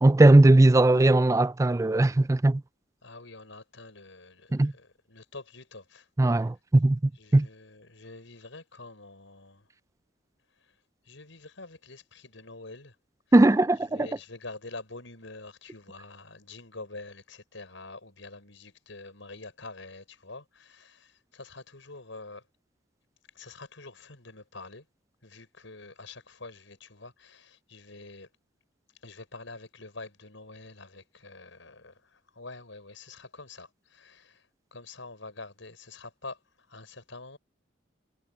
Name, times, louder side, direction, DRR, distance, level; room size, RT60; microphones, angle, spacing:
voice 1, 0.0-2.6 4.5-4.7 6.2-7.0 7.3-7.5 13.3-14.1, right 2 dB, 15° right, 0.4 m, -19 dB
voice 2, 3.0-6.5 7.1-9.7 10.6-10.8 11.0-13.0 13.8-22.4 23.3-24.9 25.2-28.3 29.0-37.4, left 3 dB, 85° left, 5.5 m, -46 dB
head